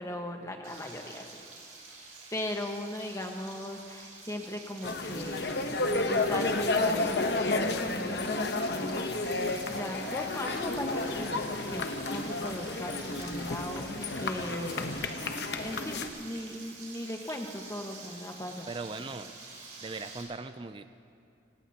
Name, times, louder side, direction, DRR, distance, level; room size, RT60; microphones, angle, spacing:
voice 1, 0.0-1.4 2.3-5.7 6.0-9.1 9.7-14.9 15.2-15.3 15.6-18.7, left 1 dB, 15° left, 2 dB, 1.3 m, -38 dB
Frying (food), 0.6-20.2, right 3 dB, 40° right, 4.0 m, -48 dB
sound 1, 4.8-16.1, left 2 dB, 60° left, 1.0 m, -31 dB
voice 2, 18.7-19.3 19.8-20.8, right 3 dB, 25° right, 10 dB, 0.4 m, -39 dB
26.5 x 17.5 x 2.9 m, 2.5 s
head